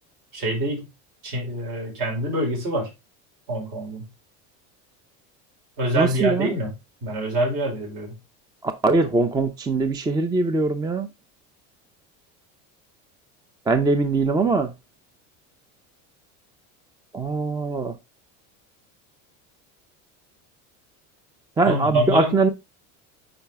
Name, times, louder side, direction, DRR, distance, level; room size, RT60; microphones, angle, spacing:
voice 1, 0.3-0.8 1.2-2.9 3.5-4.0 5.8-6.7 7.0-8.1 21.6-22.3, right 1 dB, 55° right, 4.9 m, -25 dB
voice 2, 6.0-6.5 8.8-11.1 13.7-14.7 17.1-17.9 21.6-22.5, right 3 dB, 10° right, 0.5 m, -21 dB
8.8 x 4.9 x 3.5 m
cardioid pair, 135°, 36 cm